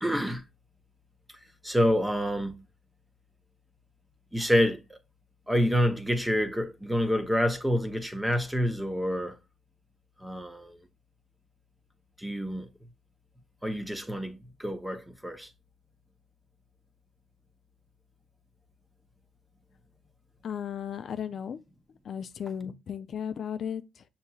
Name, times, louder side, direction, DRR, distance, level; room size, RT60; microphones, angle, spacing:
voice 1, 0.0-0.4 1.6-2.5 4.3-5.0 5.5-9.4 10.2-10.8 12.2-12.7 13.6-15.5, equal, 5° right, 0.7 m, -27 dB
voice 2, 20.4-21.6 22.0-24.1, left 8 dB, 60° left, 0.4 m, -35 dB
6.7 x 2.8 x 2.3 m
cardioid pair, 90°, 0 cm